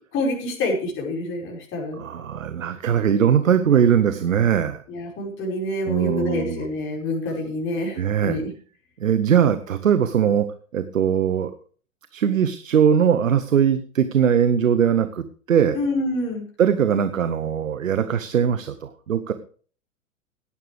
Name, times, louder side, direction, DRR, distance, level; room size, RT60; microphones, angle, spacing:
voice 1, 0.1-2.0 4.9-8.4 15.7-16.4, left 1 dB, 30° left, -1 dB, 5.3 m, -27 dB
voice 2, 2.0-4.8 5.8-6.6 8.0-8.4 9.0-10.5 10.7-11.5 12.1-15.8 16.6-19.3, right 8 dB, 70° right, 12 dB, 1.1 m, -20 dB
17.0 x 10.5 x 3.4 m, 0.42 s
figure-of-eight pair, 100°, 41 cm